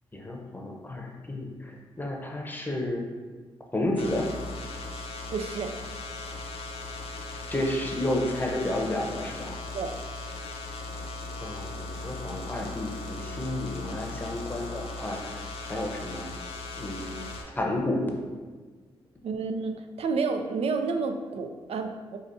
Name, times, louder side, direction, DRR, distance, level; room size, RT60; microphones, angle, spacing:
voice 1, 0.1-3.0 3.7-4.3 7.5-9.6 11.4-16.3 16.7-17.2 17.6-18.1, left 1 dB, 15° left, 1 dB, 0.7 m, -31 dB
sound 1, 4.0-17.4, left 2 dB, 65° left, 0.5 m, -38 dB
voice 2, 5.3-5.7 9.7-9.9 19.2-19.7 20.0-22.2, right 4 dB, 65° right, 6 dB, 0.4 m, -30 dB
4.7 x 2.4 x 2.6 m, 1.4 s
supercardioid pair, 50°, 11 cm